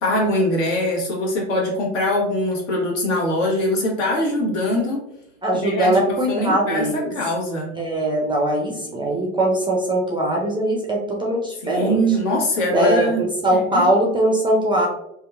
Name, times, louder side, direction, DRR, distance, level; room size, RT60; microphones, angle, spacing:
voice 1, 0.0-5.0 5.5-5.9 6.3-7.8 11.6-13.2 13.5-13.9, left 1 dB, 65° left, -2 dB, 1.1 m, -22 dB
voice 2, 5.4-7.1 7.8-12.0 12.7-14.9, right 1 dB, 15° right, -1 dB, 0.3 m, -21 dB
2.8 x 2.3 x 2.3 m, 0.83 s
hypercardioid pair, 75°, 40 cm